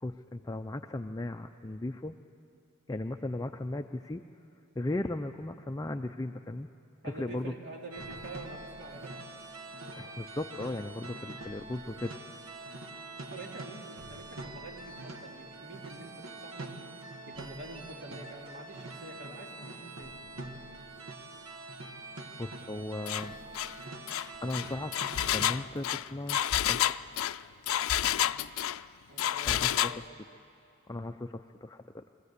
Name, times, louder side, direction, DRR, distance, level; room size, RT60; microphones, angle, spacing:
voice 1, 0.0-2.2 2.9-4.2 4.8-6.7 7.0-7.5 10.0-12.1 22.4-23.3 23.9-24.0 24.4-24.9 25.3-26.9 29.5-29.9 30.9-32.0, left 2 dB, 15° left, 6 dB, 0.4 m, -36 dB
voice 2, 7.0-9.2 13.3-16.8 17.3-20.1 29.1-30.0, right 2 dB, 55° right, 0 dB, 2.7 m, -46 dB
sound 1, 7.9-25.7, right 2 dB, 75° right, 1.5 m, -44 dB
Engine, 23.1-23.3 23.5-23.7 24.1-28.8 29.2-30.0, left 11 dB, 75° left, 0.4 m, -29 dB
23.5 x 15.5 x 8.1 m, 2.8 s
head